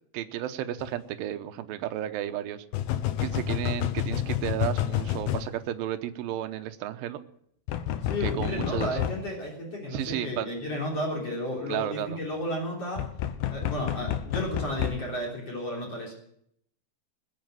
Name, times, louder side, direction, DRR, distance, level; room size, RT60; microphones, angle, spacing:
voice 1, 0.1-2.7 3.2-7.3 8.2-9.0 9.9-10.5 11.7-12.2, right 12 dB, 75° right, 8 dB, 2.6 m, -33 dB
sound 1, 0.8-0.9 2.7-5.5 7.7-9.2 13.0-15.0, left 11 dB, 80° left, 2.8 m, -29 dB
voice 2, 8.0-13.1 13.5-16.1, left 1 dB, 40° left, -2 dB, 4.3 m, -33 dB
21.0 x 8.3 x 7.7 m, 0.70 s
omnidirectional pair, 4.3 m